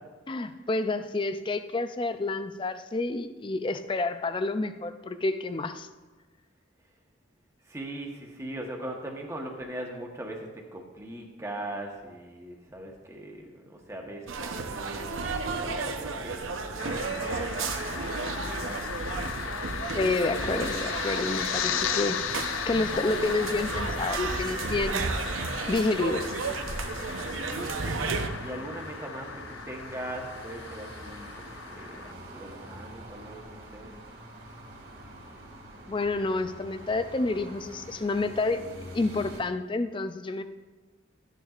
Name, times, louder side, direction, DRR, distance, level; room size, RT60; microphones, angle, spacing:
voice 1, 0.3-5.9 19.9-25.0 25.7-26.2 35.9-38.7 38.9-40.4, left 3 dB, 25° left, 10 dB, 0.3 m, -29 dB
voice 2, 7.6-19.3 27.0-33.9, right 1 dB, 15° right, 0 dB, 1.1 m, -41 dB
sound 1, 14.3-28.3, right 3 dB, 85° right, 0.8 m, -33 dB
sound 2, 16.8-32.1, left 8 dB, 85° left, 0.5 m, -36 dB
sound 3, 26.1-39.4, right 1 dB, 50° right, 1.8 m, -45 dB
13.5 x 9.1 x 2.4 m, 1.3 s
head